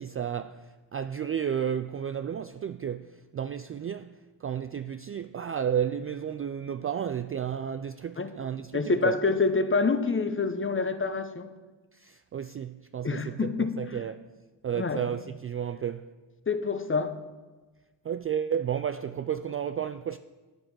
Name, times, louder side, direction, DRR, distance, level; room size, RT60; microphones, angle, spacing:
voice 1, 0.0-9.1 11.9-14.3 14.6-16.1 18.0-20.2, right 8 dB, 30° right, 0.4 m, -32 dB
voice 2, 8.7-11.5 13.0-13.8 14.8-15.0 16.5-17.2, left 4 dB, 25° left, 1.0 m, -27 dB
9.8 x 8.9 x 6.1 m
supercardioid pair, 55°, 48 cm